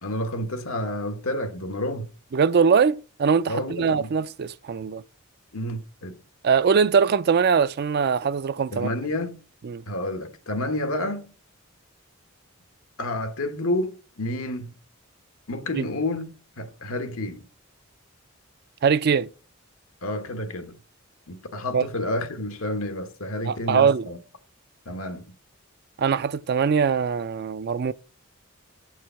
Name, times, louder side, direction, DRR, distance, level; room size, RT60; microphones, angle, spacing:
voice 1, 0.0-2.1 3.5-4.1 5.5-6.2 8.7-9.4 9.9-11.3 13.0-14.7 15.5-16.3 16.6-17.4 20.0-20.8 21.3-24.2 24.9-25.2, left 1 dB, 90° left, 1.3 m, -30 dB
voice 2, 2.3-5.0 6.4-8.9 9.6-9.8 15.8-15.9 18.8-19.3 21.7-21.8 23.4-24.1 26.0-27.9, right 6 dB, 50° right, 0.4 m, -22 dB
8.9 x 4.8 x 5.7 m
head